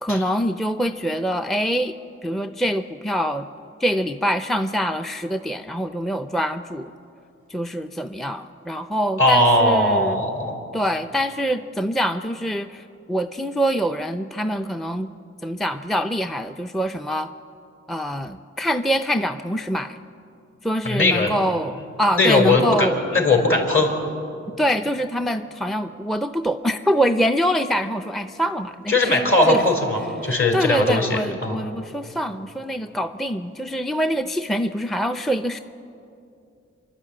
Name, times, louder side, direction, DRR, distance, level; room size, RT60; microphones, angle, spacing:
voice 1, 0.0-1.9 2.2-3.5 3.8-6.9 7.5-10.2 10.7-15.1 15.4-17.3 17.9-20.0 20.6-23.0 24.6-29.2 29.5-29.6 30.2-35.6, equal, ahead, 8 dB, 0.5 m, -24 dB
voice 2, 9.2-10.5 20.8-21.3 22.1-23.9 28.9-31.6, left 2 dB, 45° left, 3 dB, 4.1 m, -19 dB
27.0 x 11.5 x 8.7 m, 2.6 s
wide cardioid pair, 85°, 29 cm